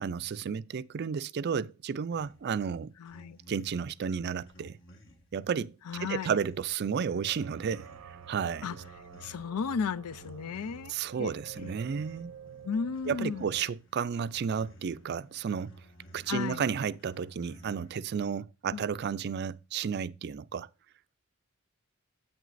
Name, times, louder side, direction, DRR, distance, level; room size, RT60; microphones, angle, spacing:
voice 1, 0.0-2.9 3.5-4.8 5.3-5.7 6.0-8.7 10.9-12.3 13.1-15.7 16.1-20.7, right 6 dB, 45° right, 0.3 m, -32 dB
sound 1, 2.1-18.0, right 1 dB, 55° left, 1.6 m, -56 dB
voice 2, 3.0-3.4 5.9-6.3 8.6-8.8 9.2-10.9 11.2-11.7 12.6-13.4 16.3-16.6 18.7-18.8, left 6 dB, 90° left, 0.4 m, -34 dB
sound 2, 7.0-13.7, right 7 dB, 90° right, 0.6 m, -49 dB
9.3 x 8.6 x 2.5 m
head